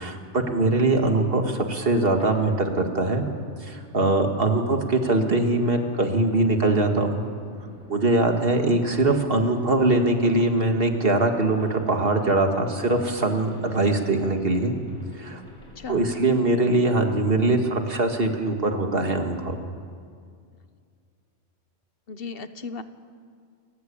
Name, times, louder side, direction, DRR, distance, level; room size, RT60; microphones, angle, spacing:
voice 1, 0.0-3.2 3.6-7.3 7.9-14.8 15.2-15.4 15.9-19.6, right 2 dB, 50° right, 4 dB, 2.2 m, -22 dB
sound 1, 2.2-16.9, left 1 dB, 70° left, 5.1 m, -47 dB
voice 2, 15.8-16.2 22.1-22.8, left 4 dB, 55° left, 11 dB, 1.1 m, -36 dB
29.0 x 14.5 x 8.6 m, 2.2 s
omnidirectional pair, 1.2 m